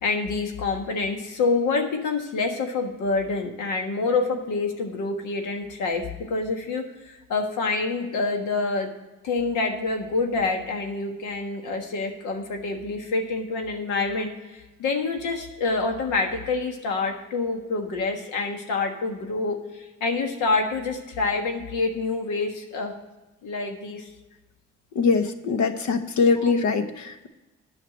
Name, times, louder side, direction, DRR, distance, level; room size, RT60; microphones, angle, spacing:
voice 1, 0.0-8.9 9.2-22.9 23.4-24.1 26.4-26.5, left 3 dB, 90° left, 3 dB, 1.5 m, -27 dB
voice 2, 24.9-27.3, left 4 dB, 70° left, 9 dB, 1.0 m, -22 dB
9.1 x 5.8 x 7.7 m, 1.1 s
cardioid pair, 90°, 30 cm